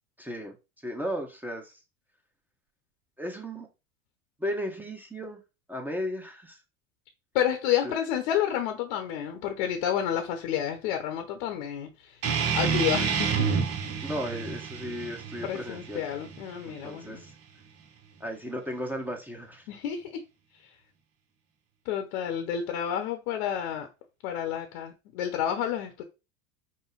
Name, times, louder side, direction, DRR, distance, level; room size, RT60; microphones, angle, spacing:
voice 1, 0.2-0.6 0.8-1.7 3.2-3.7 4.4-5.4 5.7-6.6 7.8-8.0 14.0-16.0 16.6-17.3 18.2-19.6, equal, 5° right, 1.1 m, -35 dB
voice 2, 7.3-12.2 12.5-13.5 15.4-17.2 19.7-20.2 21.8-23.9 24.2-26.0, left 10 dB, 60° left, 0.9 m, -30 dB
sound 1, 12.2-17.3, right 6 dB, 35° right, 0.9 m, -29 dB
5.1 x 2.1 x 4.1 m
hypercardioid pair, 85°, 40 cm